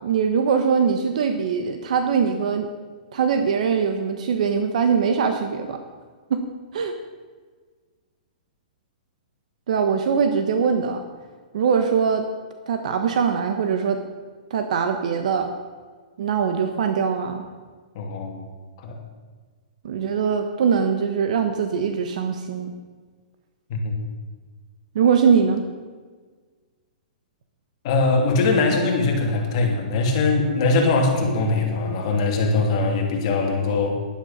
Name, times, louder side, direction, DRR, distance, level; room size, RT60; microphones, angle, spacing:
voice 1, 0.0-2.7 3.1-5.8 6.3-6.4 6.7-6.9 9.7-11.0 11.5-12.2 12.7-14.0 14.5-15.5 16.2-17.4 19.8-22.7 24.9-25.6, right 6 dB, 60° right, 6 dB, 1.3 m, -22 dB
voice 2, 17.9-18.3 18.8-19.0 23.7-23.9 27.8-34.0, left 3 dB, 40° left, 1 dB, 2.7 m, -21 dB
12.0 x 11.0 x 5.7 m, 1.5 s
hypercardioid pair, 160°, 4 cm